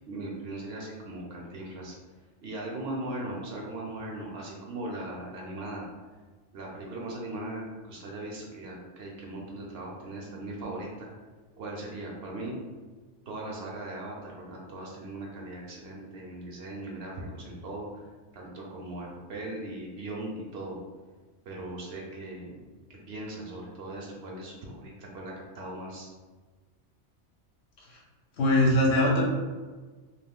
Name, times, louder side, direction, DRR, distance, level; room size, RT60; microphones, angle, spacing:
voice 1, 0.1-2.0 2.4-5.9 6.5-11.1 11.6-12.6 13.3-18.0 18.3-20.8 21.5-22.5 22.9-26.1, right 1 dB, 65° right, -2 dB, 0.8 m, -39 dB
voice 2, 28.4-29.2, left 1 dB, 65° left, -2 dB, 0.9 m, -21 dB
2.4 x 2.4 x 3.5 m, 1.4 s
omnidirectional pair, 1.2 m